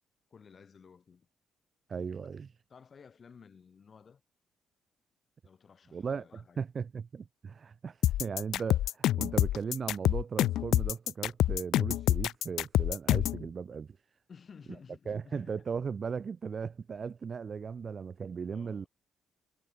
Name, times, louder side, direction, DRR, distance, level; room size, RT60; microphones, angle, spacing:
voice 1, 0.3-1.3 2.2-2.4 2.7-4.2 5.4-6.6 14.3-15.7 18.5-18.9, left 6 dB, 45° left, 5.5 m, -54 dB
voice 2, 1.9-2.5 5.9-13.9 15.1-18.9, right 6 dB, 45° right, 0.9 m, -37 dB
sound 1, 8.0-13.4, left 13 dB, 80° left, 0.4 m, -27 dB
cardioid pair, 90°, 0 cm